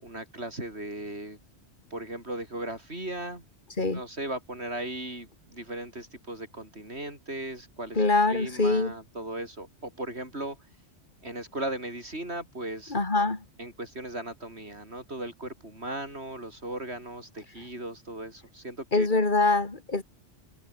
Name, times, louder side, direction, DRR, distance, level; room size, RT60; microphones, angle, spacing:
voice 1, 0.0-1.4 1.9-3.4 3.9-8.0 8.3-10.6 11.2-12.9 13.6-19.1, right 1 dB, 70° right, 8.1 m, -37 dB
voice 2, 7.9-8.9 12.9-13.4 18.9-20.0, left 3 dB, 45° left, 3.1 m, -24 dB
omnidirectional pair, 1.1 m